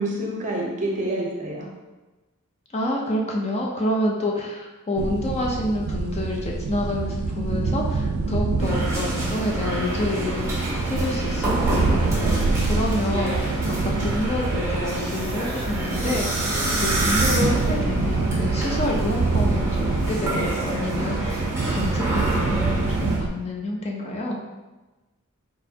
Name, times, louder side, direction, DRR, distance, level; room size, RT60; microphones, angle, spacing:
voice 1, 0.0-1.7, right 1 dB, 35° right, -2 dB, 0.8 m, -27 dB
voice 2, 2.7-11.7 12.1-24.4, left 1 dB, 30° left, -1 dB, 0.5 m, -28 dB
sound 1, 5.0-23.3, right 3 dB, 75° right, 0.4 m, -26 dB
sound 2, 8.6-23.2, right 1 dB, 10° right, 1.1 m, -28 dB
4.2 x 4.2 x 2.7 m, 1.1 s
head